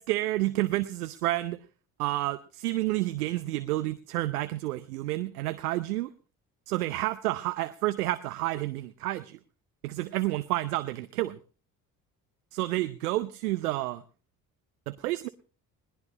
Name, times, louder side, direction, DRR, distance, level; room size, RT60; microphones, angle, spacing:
voice 1, 0.0-1.6 2.0-6.1 6.7-9.4 9.8-11.4 12.5-14.0 14.9-15.3, right 17 dB, 80° right, 14 dB, 0.7 m, -30 dB
21.0 x 17.5 x 3.0 m, 0.35 s
figure-of-eight pair, 50°, 44 cm